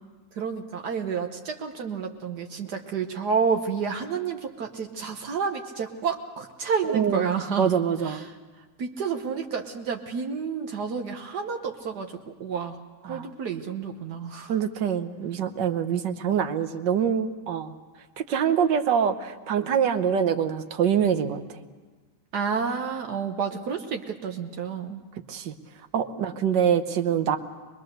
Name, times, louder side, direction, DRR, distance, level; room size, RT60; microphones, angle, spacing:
voice 1, 0.3-7.7 8.0-8.3 8.8-14.5 22.3-25.0, right 6 dB, 70° right, 4 dB, 1.5 m, -30 dB
voice 2, 6.9-7.3 7.6-8.2 13.0-13.3 14.5-17.7 18.2-21.4 25.3-25.5 25.9-27.4, right 8 dB, 90° right, 9 dB, 1.7 m, -25 dB
24.0 x 21.0 x 6.6 m, 1.3 s
omnidirectional pair, 1.8 m